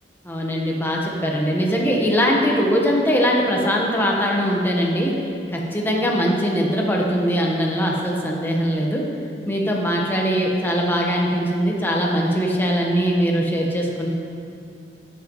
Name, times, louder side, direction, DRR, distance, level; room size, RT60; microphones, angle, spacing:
voice 1, 0.2-5.1 5.5-9.0 9.5-14.1, equal, 10° left, -2 dB, 1.2 m, -21 dB
12.5 x 9.3 x 3.1 m, 2.4 s
head